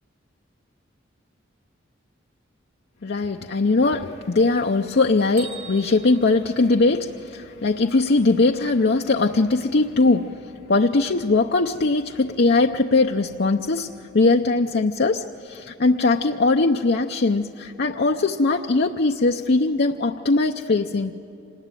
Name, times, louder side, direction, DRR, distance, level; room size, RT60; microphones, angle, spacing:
voice 1, 3.0-21.2, left 3 dB, 55° left, 3 dB, 0.6 m, -20 dB
Bell, 5.4-7.4, right 7 dB, 85° right, 5.0 m, -43 dB
26.5 x 19.5 x 9.0 m, 2.9 s
head